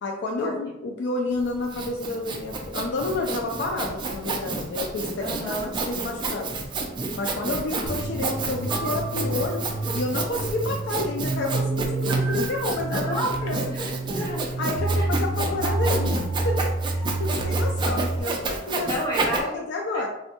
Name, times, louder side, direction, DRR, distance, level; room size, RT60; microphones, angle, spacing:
voice 1, 0.0-5.6 5.9-6.5 7.2-9.6 9.9-13.6 14.6-16.6 16.9-18.9 19.4-20.1, left 2 dB, 60° left, 1 dB, 0.4 m, -30 dB
Sawing, 1.4-19.4, right 3 dB, 25° right, 0.3 m, -30 dB
voice 2, 5.2-5.7 13.1-13.3 13.7-14.4 14.9-15.0 15.5-15.6 18.9-19.7 19.9-20.0, equal, 20° left, -5 dB, 1.0 m, -31 dB
sound 1, 7.8-18.2, right 2 dB, 80° right, 0.6 m, -28 dB
3.3 x 2.2 x 2.8 m, 0.88 s
head